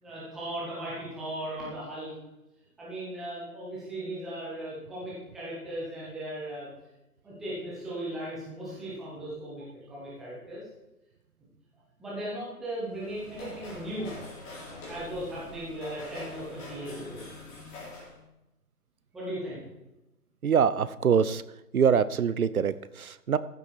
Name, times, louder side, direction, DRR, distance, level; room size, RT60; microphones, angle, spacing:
voice 1, 0.0-2.1 2.8-6.7 7.2-10.6 12.0-14.1 14.6-17.2 19.1-19.6, right 1 dB, ahead, -8 dB, 0.8 m, -37 dB
sound 1, 12.8-18.2, left 2 dB, 20° left, 3.5 m, -44 dB
voice 2, 20.4-21.4 21.7-23.4, right 7 dB, 65° right, 16 dB, 0.7 m, -24 dB
14.0 x 7.9 x 4.4 m, 0.96 s
figure-of-eight pair, 150°, 47 cm